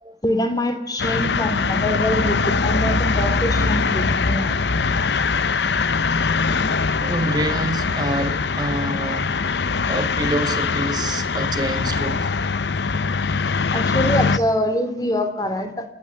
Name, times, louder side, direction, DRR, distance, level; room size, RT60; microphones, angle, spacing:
voice 1, 0.2-4.9 13.7-15.8, left 1 dB, 20° left, 2.8 m, -24 dB
sound 1, 1.0-14.4, left 4 dB, 70° left, 0.8 m, -22 dB
voice 2, 7.0-9.3 9.9-12.3, right 1 dB, 20° right, 1.5 m, -26 dB
28.0 x 10.5 x 9.9 m
head